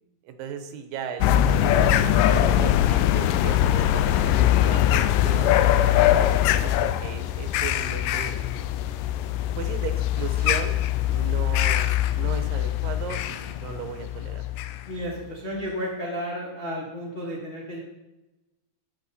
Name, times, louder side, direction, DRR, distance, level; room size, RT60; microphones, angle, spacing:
voice 1, 0.2-8.4 9.6-10.8 11.1-14.5, right 8 dB, 85° right, 7 dB, 2.6 m, -36 dB
sound 1, 1.2-15.0, left 12 dB, 80° left, 2.1 m, -22 dB
sound 2, 10.3-11.1 13.0-13.1 13.5-13.6, left 1 dB, 65° left, 3.8 m, -46 dB
voice 2, 14.9-17.8, equal, 40° left, -5 dB, 0.9 m, -32 dB
11.0 x 8.0 x 4.2 m, 1.0 s
omnidirectional pair, 4.0 m